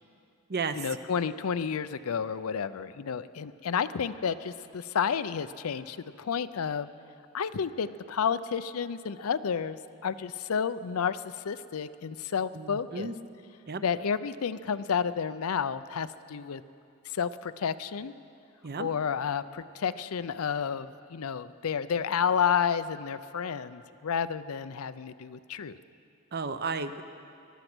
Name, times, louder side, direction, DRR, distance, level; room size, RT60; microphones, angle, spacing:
voice 1, 0.7-6.9 7.3-13.1 13.8-16.6 17.1-18.1 18.8-25.8, left 7 dB, 75° left, 14 dB, 0.5 m, -31 dB
voice 2, 12.5-13.1 13.7-13.8 18.6-18.9 26.3-27.0, right 4 dB, 45° right, 10 dB, 0.7 m, -33 dB
20.0 x 12.0 x 6.1 m, 2.5 s
head